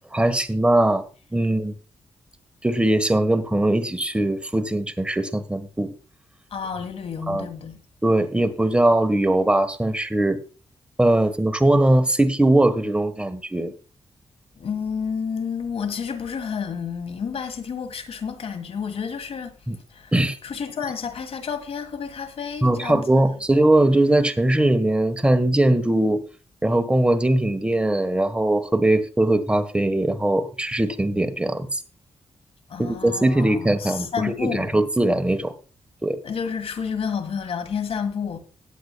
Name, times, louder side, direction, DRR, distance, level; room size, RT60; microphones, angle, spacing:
voice 1, 0.1-1.0 1.3-1.7 2.6-5.9 7.3-7.5 8.0-10.4 11.0-13.7 19.7-19.8 20.1-20.4 22.6-26.2 26.6-31.8 32.8-35.5 36.0-36.2, right 1 dB, 10° right, 1.3 m, -20 dB
voice 2, 6.5-7.8 14.6-19.6 19.9-20.1 20.4-23.1 32.7-34.7 36.2-38.4, left 6 dB, 70° left, 1.8 m, -30 dB
18.5 x 8.2 x 2.3 m
cardioid pair, 95°, 11 cm